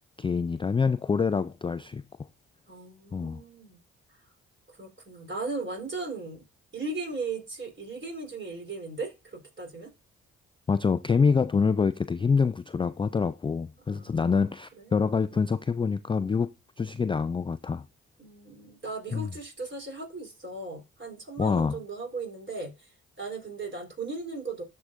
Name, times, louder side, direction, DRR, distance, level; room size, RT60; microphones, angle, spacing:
voice 1, 0.2-2.0 3.1-3.4 10.7-16.5 16.8-17.9 19.1-19.3 21.4-21.8, left 5 dB, 15° left, 0.3 m, -26 dB
voice 2, 2.7-3.8 4.7-6.4 6.7-9.9 13.9-15.4 18.2-24.6, right 3 dB, 35° right, 3.8 m, -37 dB
13.0 x 4.8 x 2.5 m
hypercardioid pair, 45°, 34 cm